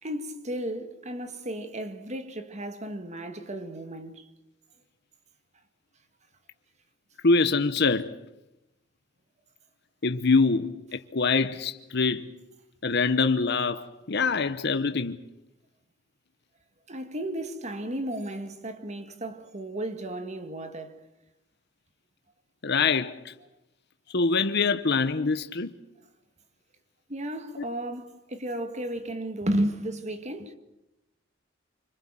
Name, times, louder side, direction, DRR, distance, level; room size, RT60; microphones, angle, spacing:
voice 1, 0.0-4.3 16.9-21.1 27.1-30.5, right 1 dB, 35° right, 1.8 m, -33 dB
voice 2, 7.2-8.2 10.0-12.3 12.8-15.2 22.6-23.3 24.1-25.7, left 4 dB, 60° left, 1.0 m, -24 dB
26.5 x 25.0 x 7.5 m
head